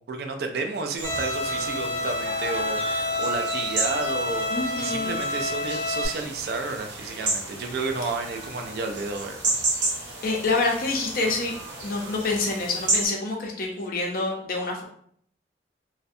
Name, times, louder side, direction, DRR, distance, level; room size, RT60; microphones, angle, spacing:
voice 1, 0.0-4.5 4.8-9.6, right 3 dB, 55° right, 5 dB, 0.3 m, -31 dB
Bowed string instrument, 1.0-6.1, left 1 dB, 15° left, 1.0 m, -29 dB
sound 1, 1.0-13.1, right 2 dB, 85° right, 0.8 m, -32 dB
voice 2, 4.5-5.2 10.2-11.5 11.8-14.8, left 3 dB, 50° left, 0 dB, 0.5 m, -27 dB
2.5 x 2.1 x 2.5 m, 0.63 s
head